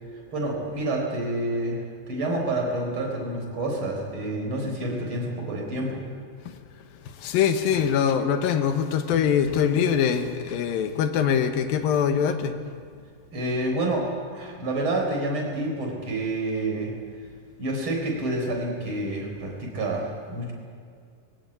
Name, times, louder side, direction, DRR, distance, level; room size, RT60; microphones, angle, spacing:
voice 1, 0.3-6.0 13.3-17.0 17.6-20.5, right 1 dB, 35° right, 0 dB, 4.7 m, -28 dB
voice 2, 7.2-12.6, left 8 dB, 85° left, 8 dB, 2.9 m, -23 dB
19.5 x 17.5 x 8.5 m, 2.2 s
omnidirectional pair, 4.1 m